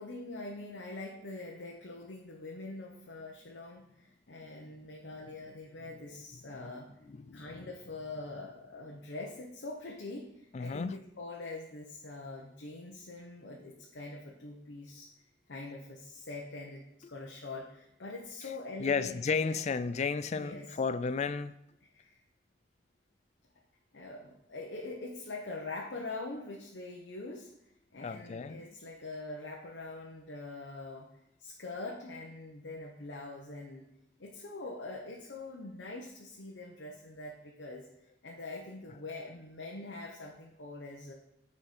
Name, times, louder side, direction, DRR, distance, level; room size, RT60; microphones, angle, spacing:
voice 1, 0.0-6.9 7.3-15.1 15.5-19.6 20.3-20.8 21.9-22.2 23.9-27.5 27.9-31.1 31.4-33.9 34.2-37.9 38.2-41.1, left 2 dB, 75° left, 1.0 m, -44 dB
voice 2, 7.1-7.7 10.5-11.0 18.8-21.5 28.0-28.6, left 5 dB, 40° left, 0.3 m, -33 dB
9.7 x 4.4 x 4.3 m
head